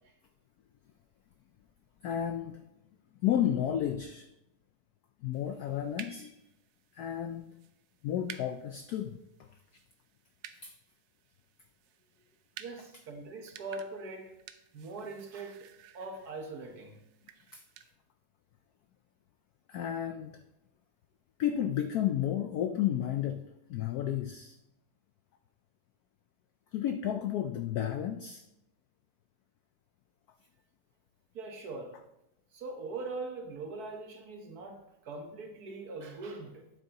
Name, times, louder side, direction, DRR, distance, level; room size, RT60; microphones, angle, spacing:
voice 1, 2.0-2.6 3.2-4.3 5.2-6.4 6.9-7.5 8.0-9.2 10.6-10.7 17.5-17.6 19.7-20.4 21.4-24.6 26.7-28.4, left 10 dB, 85° left, 8 dB, 0.8 m, -32 dB
sound 1, 5.3-17.9, right 10 dB, 80° right, 1.3 m, -53 dB
voice 2, 12.6-14.4 14.7-15.7 15.9-17.0 31.3-32.0 32.5-36.6, right 3 dB, 55° right, 4 dB, 1.4 m, -41 dB
9.5 x 8.1 x 2.9 m, 0.84 s
omnidirectional pair, 2.2 m